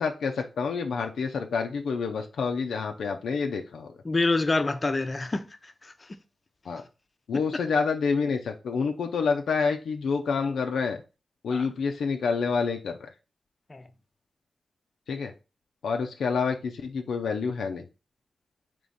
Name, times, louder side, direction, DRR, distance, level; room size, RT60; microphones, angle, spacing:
voice 1, 0.0-3.9 6.7-6.8 7.3-11.0 11.4-13.1 15.1-15.3 15.8-17.8, left 5 dB, 85° left, 0.4 m, -28 dB
voice 2, 4.0-6.2 7.3-7.4 11.5-11.7 13.7-13.9, left 3 dB, 40° left, 0.6 m, -27 dB
3.5 x 3.0 x 3.9 m
supercardioid pair, 40°, 0 cm